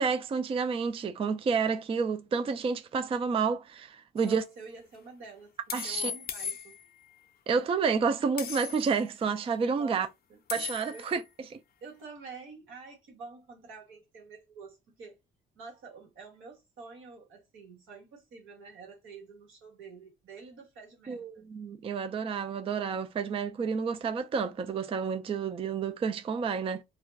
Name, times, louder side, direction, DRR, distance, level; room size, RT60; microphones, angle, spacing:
voice 1, 0.0-4.4 5.7-6.1 7.5-10.1 10.5-11.2 11.5-11.6 21.1-26.8, right 5 dB, 30° right, 0.3 m, -30 dB
sound 1, 4.2-4.3 5.7-7.1 8.4-9.0 10.5-11.2, left 6 dB, 50° left, 0.5 m, -37 dB
voice 2, 4.2-5.5 5.8-6.8 9.8-10.4 10.9-11.1 11.8-15.2 15.5-21.4, right 4 dB, 85° right, 1.4 m, -48 dB
2.4 x 2.1 x 3.3 m
cardioid pair, 90°, 20 cm